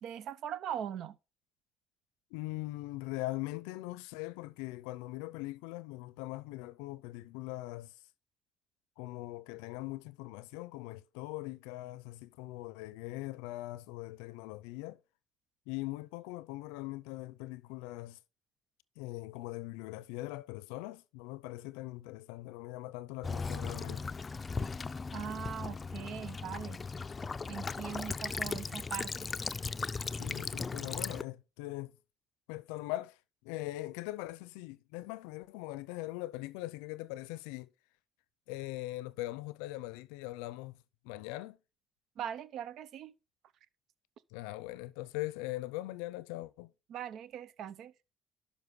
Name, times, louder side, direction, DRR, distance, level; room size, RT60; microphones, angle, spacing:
voice 1, 0.0-1.2 25.1-26.8 27.5-29.1 42.2-43.1 46.9-47.9, right 9 dB, 70° right, 0.6 m, -40 dB
voice 2, 2.3-8.0 9.0-15.0 15.7-18.2 19.0-24.1 30.0-31.9 32.5-37.7 38.5-40.8 41.0-41.6 44.3-46.7, left 18 dB, 85° left, 0.5 m, -41 dB
Child speech kid speaking / Bird vocalization bird call bird song / Stream, 23.2-31.2, left 4 dB, 30° left, 0.4 m, -37 dB
11.5 x 5.1 x 3.9 m
hypercardioid pair, 60°, 0 cm